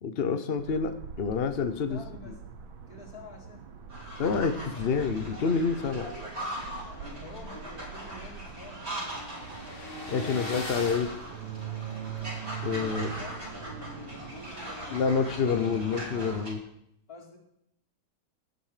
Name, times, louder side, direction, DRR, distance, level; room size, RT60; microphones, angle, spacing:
voice 1, 0.0-2.3 4.2-6.1 10.1-11.1 12.6-13.1 14.9-16.6, left 5 dB, 70° left, 9 dB, 0.5 m, -28 dB
sound 1, 0.6-16.4, right 8 dB, 75° right, 1.9 m, -43 dB
voice 2, 1.9-2.3 2.9-3.7 7.0-8.8 12.6-15.8 17.1-17.4, left 3 dB, 45° left, 1 dB, 3.0 m, -47 dB
sound 2, 3.9-16.5, right 1 dB, 30° right, 4.4 m, -41 dB
sound 3, 7.4-12.2, left 1 dB, 25° left, 2.4 m, -42 dB
18.0 x 9.3 x 5.0 m, 0.75 s
omnidirectional pair, 2.3 m